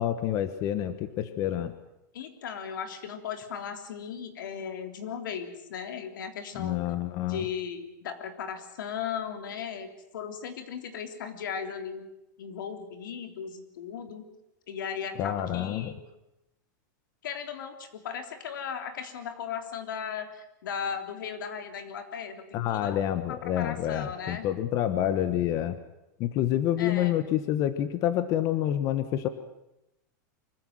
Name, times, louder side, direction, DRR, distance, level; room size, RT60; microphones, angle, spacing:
voice 1, 0.0-1.7 6.5-7.4 15.2-15.9 22.5-25.8 26.2-29.3, left 11 dB, 35° left, 11 dB, 1.3 m, -28 dB
voice 2, 2.1-6.8 7.2-12.1 12.4-14.3 14.7-16.0 17.2-23.0 23.3-24.5 26.8-27.1, left 7 dB, 85° left, 7 dB, 3.5 m, -37 dB
24.5 x 15.0 x 9.3 m, 0.88 s
supercardioid pair, 160°, 10 cm